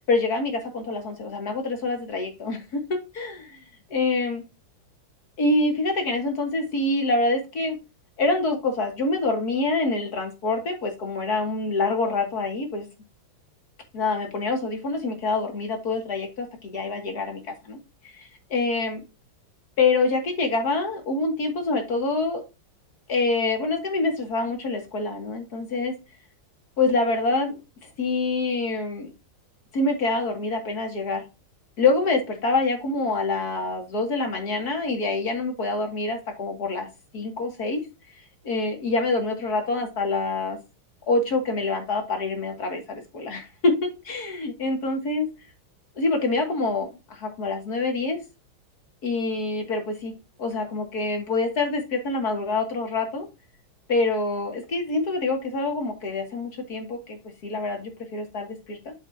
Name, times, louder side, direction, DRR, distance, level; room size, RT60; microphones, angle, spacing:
voice 1, 0.1-3.6 3.9-4.4 5.4-7.8 8.2-12.9 13.9-17.8 18.1-19.0 19.8-22.4 23.1-25.9 26.8-27.6 28.0-29.1 29.7-31.2 31.8-36.9 37.1-37.8 38.4-40.6 41.1-45.3 46.0-48.2 49.0-50.1 50.4-53.3 53.9-58.9, left 3 dB, 50° left, 3 dB, 2.6 m, -26 dB
8.1 x 6.9 x 2.7 m, 0.26 s
omnidirectional pair, 2.2 m